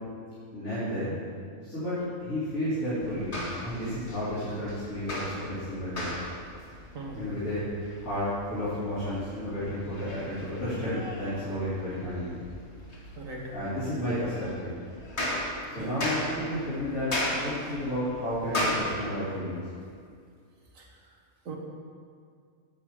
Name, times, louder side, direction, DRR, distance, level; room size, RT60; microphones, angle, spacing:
voice 1, 0.5-1.2 1.6-6.1 7.1-7.6 8.0-12.4 13.5-14.8 15.7-19.6, left 1 dB, 70° left, -14 dB, 3.6 m, -32 dB
sound 1, 3.0-18.8, left 1 dB, 50° left, 1.8 m, -37 dB
voice 2, 13.2-13.5 15.8-16.0 20.8-20.9 21.5-21.6, right 2 dB, 65° right, 0 dB, 1.8 m, -39 dB
8.8 x 8.7 x 5.0 m, 2.2 s
omnidirectional pair, 1.5 m